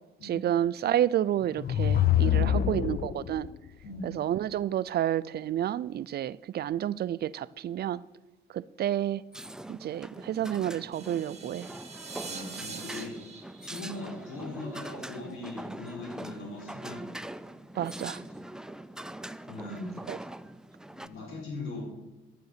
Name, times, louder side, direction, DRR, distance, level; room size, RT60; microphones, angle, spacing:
voice 1, 0.2-3.5 4.0-8.0 8.5-9.2 9.7-11.7 17.8-18.2 20.1-20.2, right 11 dB, 55° right, 0.4 m, -30 dB
sound 1, 1.4-3.5, left 12 dB, 50° left, 0.5 m, -25 dB
voice 2, 2.2-2.9 3.8-4.1 12.2-13.2 13.6-17.0 18.4-18.5 19.5-19.9 20.9-21.8, left 2 dB, 85° left, 4.0 m, -39 dB
sound 2, 9.3-21.1, right 1 dB, 5° right, 0.5 m, -43 dB
sound 3, 10.9-15.0, right 5 dB, 35° right, 1.6 m, -44 dB
11.0 x 7.8 x 6.7 m
cardioid pair, 90°, 20 cm